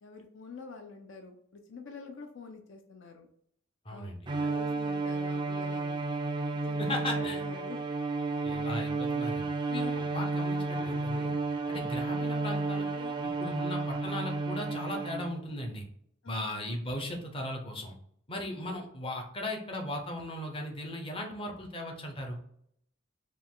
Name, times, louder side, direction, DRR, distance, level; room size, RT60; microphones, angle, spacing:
voice 1, 0.0-3.3 3.9-4.1 4.4-6.1 6.7-7.8 16.2-16.7, left 3 dB, 65° left, 5 dB, 0.5 m, -46 dB
voice 2, 3.8-4.2 6.8-7.4 8.4-11.3 11.7-15.9 16.3-18.0 18.3-22.4, left 1 dB, 25° left, 1 dB, 0.8 m, -37 dB
Bowed string instrument, 4.3-15.5, right 3 dB, 25° right, 0.4 m, -32 dB
5.0 x 2.4 x 3.7 m, 0.68 s
head